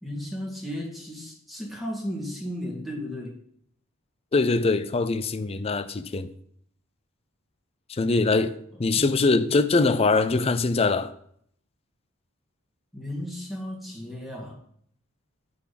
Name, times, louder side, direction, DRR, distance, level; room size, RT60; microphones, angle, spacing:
voice 1, 0.0-3.4 8.7-9.5 12.9-14.6, left 1 dB, ahead, 1.8 m, -35 dB
voice 2, 4.3-6.3 8.0-8.5 8.8-11.1, left 3 dB, 30° left, 0.4 m, -22 dB
9.0 x 4.1 x 5.8 m
head